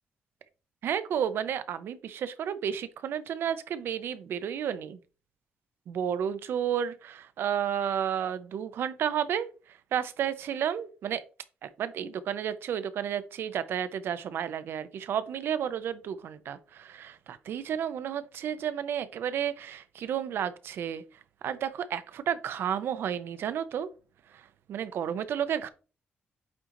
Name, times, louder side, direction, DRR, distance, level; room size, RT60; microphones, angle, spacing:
voice 1, 0.8-5.0 5.9-11.2 11.6-23.9 24.3-25.7, right 9 dB, 75° right, 13 dB, 0.7 m, -32 dB
8.7 x 3.8 x 3.0 m, 0.35 s
cardioid pair, 110°, 4 cm